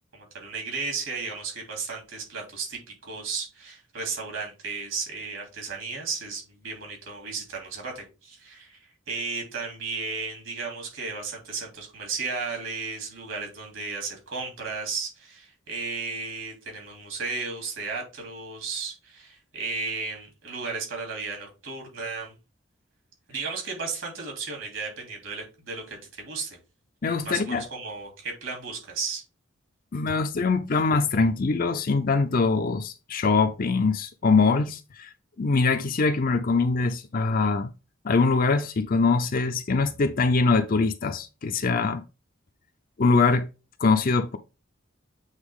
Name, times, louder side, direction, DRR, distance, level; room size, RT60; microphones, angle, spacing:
voice 1, 0.1-8.8 9.1-22.3 23.3-26.6 27.2-29.2, right 4 dB, 70° right, 3.2 m, -34 dB
voice 2, 27.0-27.7 29.9-35.1 35.4-37.7 38.0-42.0 43.0-43.5 43.8-44.4, left 4 dB, 45° left, 0.5 m, -23 dB
8.1 x 3.4 x 3.7 m
head